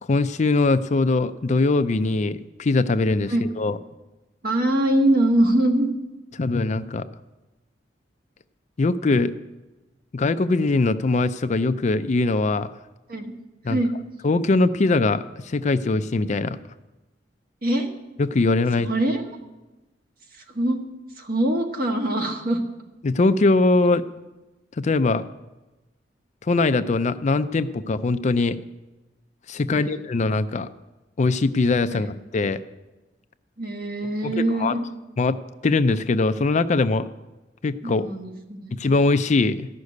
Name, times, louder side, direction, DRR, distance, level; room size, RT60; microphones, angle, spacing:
voice 1, 0.1-3.8 6.4-7.1 8.8-9.3 10.1-12.7 13.6-13.8 14.2-16.6 18.2-18.9 23.0-24.0 24.8-25.2 26.4-28.6 29.5-30.7 31.2-32.6 34.2-34.8 35.2-35.4 35.6-37.1 37.6-38.1 38.7-39.7, left 3 dB, 40° left, 12 dB, 0.4 m, -21 dB
voice 2, 4.4-5.9 13.1-13.3 13.7-13.9 17.6-17.9 18.8-19.4 20.4-20.8 21.2-22.6 29.7-30.0 31.9-32.1 33.6-34.8 37.8-38.7, right 1 dB, 55° right, 3 dB, 1.6 m, -23 dB
13.5 x 6.6 x 9.5 m, 1.1 s
head